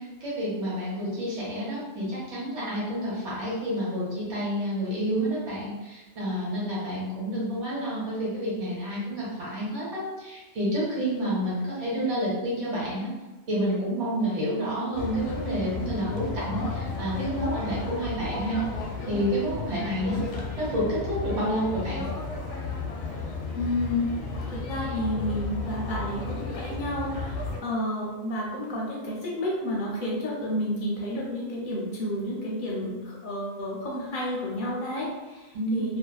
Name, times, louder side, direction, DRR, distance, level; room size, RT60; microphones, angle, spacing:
voice 1, 0.0-13.1 13.5-18.6 19.1-20.2 20.6-22.0 35.5-35.9, equal, 90° right, -7 dB, 1.4 m, -29 dB
sound 1, 14.9-27.6, left 3 dB, 85° left, 0.9 m, -33 dB
voice 2, 23.5-24.1 24.5-36.0, left 1 dB, 55° left, -4 dB, 0.6 m, -31 dB
2.5 x 2.2 x 2.3 m, 1.2 s
omnidirectional pair, 1.2 m